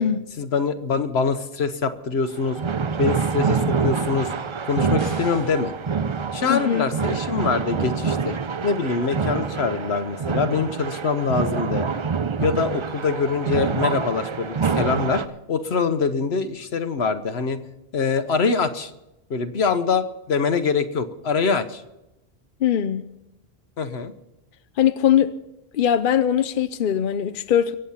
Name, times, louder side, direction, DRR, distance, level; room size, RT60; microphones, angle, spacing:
voice 1, 0.4-2.6 3.0-4.3 4.6-5.7 6.3-8.4 8.6-11.9 12.4-15.2 15.5-17.6 17.9-18.9 19.3-21.8 23.8-24.1, left 5 dB, 75° left, 1.2 m, -24 dB
sound 1, 2.3-15.3, right 5 dB, 40° right, 0.5 m, -26 dB
sound 2, 5.0-5.7, equal, 60° right, 5.4 m, -41 dB
voice 2, 6.5-6.8 22.6-23.0 24.8-25.3 25.7-27.7, left 9 dB, 60° left, 0.7 m, -20 dB
24.0 x 8.0 x 5.7 m
omnidirectional pair, 1.1 m